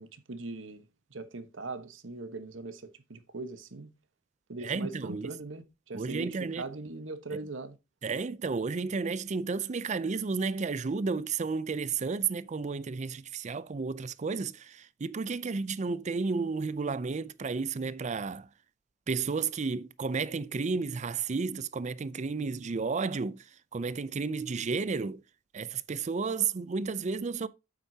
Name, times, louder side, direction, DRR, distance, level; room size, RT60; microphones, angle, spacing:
voice 1, 0.0-3.9 4.5-7.8, right 3 dB, 85° right, 1.2 m, -41 dB
voice 2, 4.6-5.3 5.9-6.7 8.0-18.5 19.1-23.4 23.7-25.2 25.5-27.5, right 4 dB, 40° right, 0.4 m, -32 dB
9.0 x 8.1 x 2.8 m
head